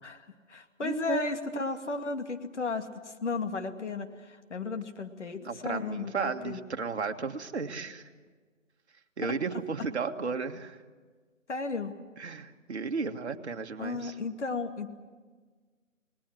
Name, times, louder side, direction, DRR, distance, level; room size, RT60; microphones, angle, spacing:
voice 1, 0.0-6.6 11.5-11.9 13.8-14.9, left 4 dB, 60° left, 6 dB, 2.4 m, -34 dB
voice 2, 0.8-1.7 5.4-8.1 9.2-10.8 12.2-14.1, right 5 dB, 55° right, 6 dB, 1.8 m, -34 dB
30.0 x 20.0 x 7.8 m, 1.5 s
figure-of-eight pair, 155°, 40 cm